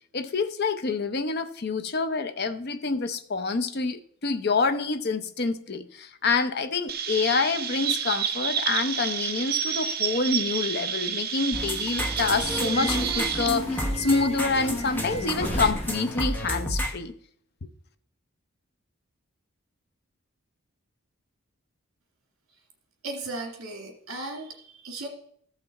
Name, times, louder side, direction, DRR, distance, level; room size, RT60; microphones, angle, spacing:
voice 1, 0.1-17.1, left 4 dB, 45° left, 9 dB, 0.6 m, -27 dB
Chirp tweet, 6.9-13.5, right 8 dB, 45° right, 0.6 m, -29 dB
sound 1, 11.5-16.9, equal, 10° left, 0.9 m, -31 dB
Subway metro underground, 11.9-16.1, equal, 30° left, 1.2 m, -34 dB
voice 2, 23.0-25.1, right 2 dB, 70° right, 2 dB, 2.3 m, -36 dB
14.0 x 5.8 x 4.1 m, 0.64 s
head